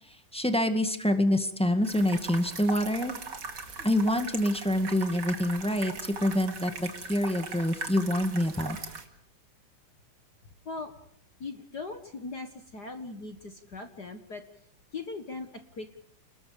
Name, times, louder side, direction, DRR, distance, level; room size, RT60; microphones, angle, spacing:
voice 1, 0.1-3.1 3.8-8.8, left 1 dB, 5° left, 7 dB, 1.1 m, -26 dB
sound 1, 1.8-9.1, right 4 dB, 35° right, 2.5 m, -39 dB
voice 2, 11.4-14.4 14.9-16.0, left 3 dB, 40° left, 7 dB, 1.6 m, -39 dB
30.0 x 20.5 x 5.2 m, 0.68 s
omnidirectional pair, 3.7 m